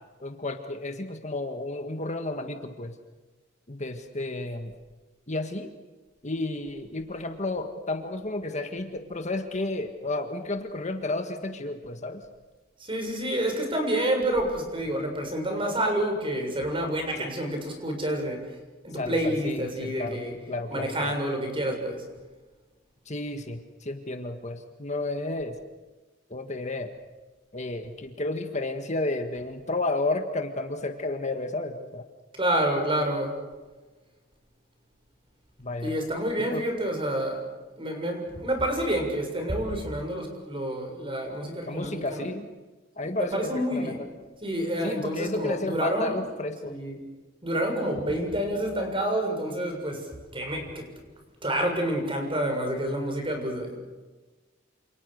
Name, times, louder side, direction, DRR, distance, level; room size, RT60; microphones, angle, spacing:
voice 1, 0.2-2.9 3.7-4.7 5.3-5.7 6.2-12.2 17.2-17.3 18.9-20.2 20.5-21.2 23.0-25.6 26.3-26.9 27.5-32.1 35.6-35.9 36.5-36.6 41.6-42.5 43.0-43.9 44.8-46.7, left 2 dB, 40° left, 5 dB, 1.7 m, -32 dB
voice 2, 12.8-18.5 18.8-20.3 20.7-22.0 32.4-33.4 35.8-37.4 37.8-42.3 43.0-44.0 44.4-46.2 46.6-47.0 47.4-50.9 51.4-53.8, right 1 dB, 30° right, 3 dB, 6.9 m, -28 dB
28.5 x 28.0 x 6.6 m, 1.3 s
head